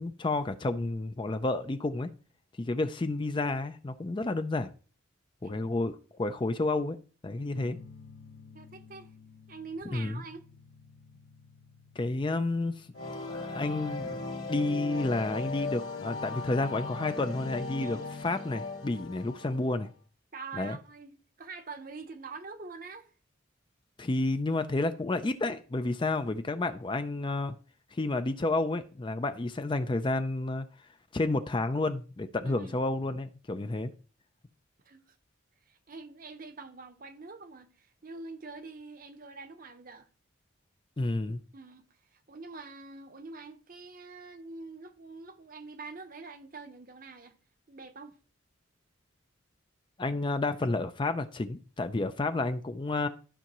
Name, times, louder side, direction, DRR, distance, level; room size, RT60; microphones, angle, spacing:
voice 1, 0.0-2.1 2.6-4.7 5.4-7.0 7.2-7.8 9.9-10.2 12.0-12.9 13.3-14.2 14.5-18.0 18.2-19.9 20.5-20.8 24.0-27.5 27.9-30.7 31.1-33.9 41.0-41.4 50.0-53.1, left 2 dB, 25° left, 0.4 m, -30 dB
voice 2, 7.4-7.7 8.5-9.1 9.5-10.4 17.8-18.1 20.3-23.1 32.4-32.8 34.8-35.0 35.7-40.1 41.5-41.9 42.1-47.4 47.7-48.2, right 4 dB, 45° right, 0.8 m, -45 dB
sound 1, 7.5-15.2, left 4 dB, 55° left, 0.9 m, -55 dB
sound 2, 12.9-19.8, left 3 dB, 90° left, 2.3 m, -38 dB
12.5 x 5.7 x 3.0 m
head